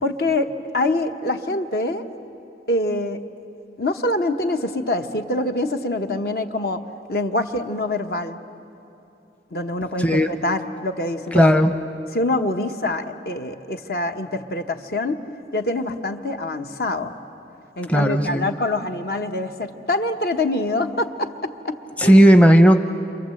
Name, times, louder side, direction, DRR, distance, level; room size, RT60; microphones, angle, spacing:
voice 1, 0.0-2.1 2.7-3.2 3.8-6.8 7.1-8.4 9.5-11.4 12.1-15.2 15.5-17.1 17.8-21.8 22.0-22.2, left 2 dB, 55° left, 6 dB, 1.1 m, -25 dB
voice 2, 11.3-11.8 17.9-18.5 22.0-22.8, equal, 10° left, 6 dB, 0.7 m, -14 dB
28.5 x 26.5 x 7.8 m, 2.9 s
head